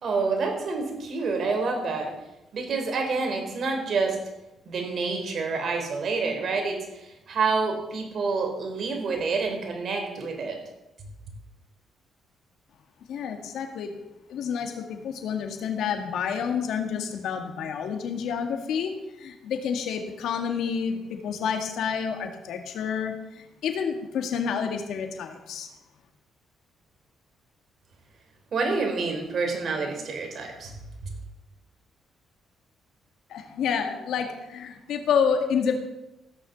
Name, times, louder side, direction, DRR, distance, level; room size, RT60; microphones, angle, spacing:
voice 1, 0.0-2.1 2.5-4.2 4.7-10.6 28.5-30.7 31.0-31.1, right 4 dB, 55° right, 4 dB, 3.6 m, -28 dB
voice 2, 13.1-13.9 14.3-25.7 33.3-35.8, left 7 dB, 80° left, 5 dB, 1.9 m, -29 dB
15.5 x 6.8 x 7.0 m, 0.93 s
cardioid pair, 90°, 0 cm